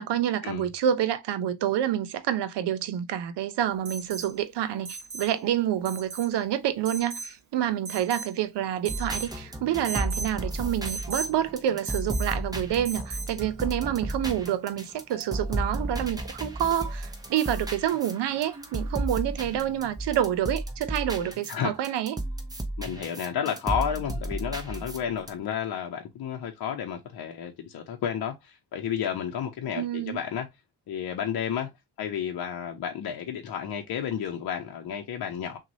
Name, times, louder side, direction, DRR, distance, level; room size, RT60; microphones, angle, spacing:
voice 1, 0.0-22.2 29.7-30.2, right 11 dB, 90° right, 0.7 m, -28 dB
Alarm, 3.8-4.3 4.8-5.3 5.8-6.3 6.8-7.3 7.8-8.4 8.8-9.3 9.8-10.3 10.8-11.3 11.8-12.3 12.8-13.3 15.1-15.2, right 4 dB, 45° right, 0.9 m, -37 dB
sound 1, 8.9-21.6 21.8-25.3, right 1 dB, 10° right, 0.7 m, -34 dB
voice 2, 21.5-22.0 22.8-30.5 30.9-31.7 32.0-35.6, left 8 dB, 60° left, 0.7 m, -31 dB
6.0 x 2.4 x 2.7 m
wide cardioid pair, 170°, 40 cm